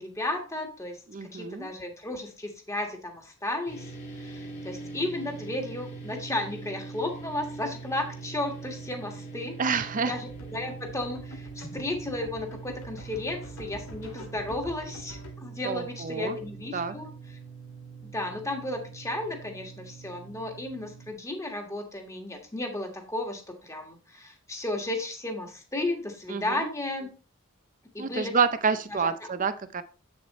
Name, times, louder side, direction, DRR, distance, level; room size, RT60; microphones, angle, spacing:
voice 1, 0.0-9.6 10.0-17.1 18.1-27.1 27.9-28.4 28.9-29.1, left 2 dB, 15° left, 3 dB, 1.6 m, -34 dB
voice 2, 1.1-1.7 9.6-10.1 15.6-16.4 16.7-16.9 26.3-26.7 28.0-29.8, right 5 dB, 40° right, 12 dB, 0.6 m, -28 dB
sound 1, 3.7-21.1, right 4 dB, 35° left, 2.0 m, -43 dB
sound 2, 10.3-15.3, left 1 dB, 80° left, 2.1 m, -46 dB
8.0 x 7.1 x 3.1 m, 0.36 s
head